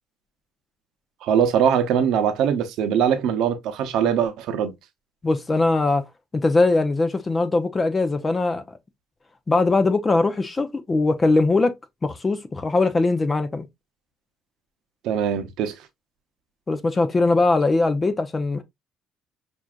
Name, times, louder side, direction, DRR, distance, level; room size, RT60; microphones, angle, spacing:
voice 1, 1.2-4.7 15.0-15.8, right 8 dB, 75° right, 0.7 m, -22 dB
voice 2, 5.2-6.0 6.3-8.6 9.5-11.7 12.0-13.7 16.7-18.6, left 3 dB, 25° left, 0.7 m, -21 dB
5.9 x 2.6 x 2.4 m
cardioid pair, 110°, 0 cm